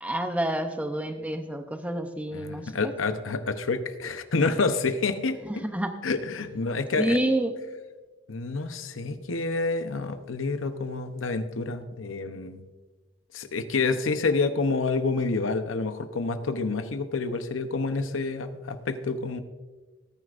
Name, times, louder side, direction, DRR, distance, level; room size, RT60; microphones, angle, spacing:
voice 1, 0.0-2.9 5.5-5.9 7.0-7.5, right 1 dB, 5° right, 6 dB, 0.6 m, -28 dB
voice 2, 2.3-5.4 6.0-7.2 8.3-12.6 13.3-19.4, left 3 dB, 80° left, 9 dB, 0.8 m, -28 dB
19.0 x 9.7 x 2.5 m, 1.3 s
head